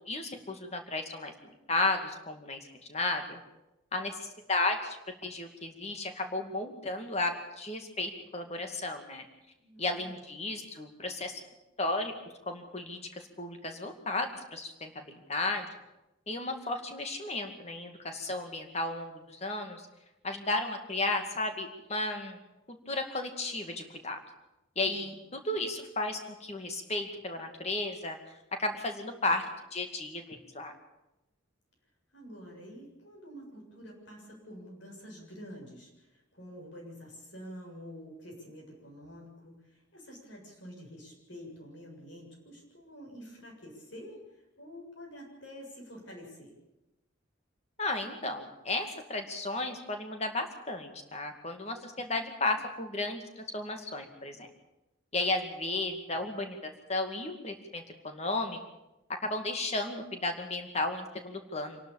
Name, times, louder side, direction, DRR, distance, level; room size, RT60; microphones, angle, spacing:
voice 1, 0.1-2.6 2.9-3.4 3.9-4.2 4.5-5.0 5.2-9.3 9.8-11.4 11.8-12.1 12.5-15.7 16.3-19.8 20.2-22.4 22.7-24.2 24.8-28.2 28.6-29.4 29.7-30.7 47.8-54.5 55.1-58.6 59.2-61.8, left 2 dB, 35° left, 5 dB, 2.3 m, -34 dB
voice 2, 9.6-10.2 24.8-25.2 32.1-46.5, equal, 65° left, -1 dB, 7.3 m, -48 dB
26.0 x 12.0 x 8.8 m, 0.97 s
head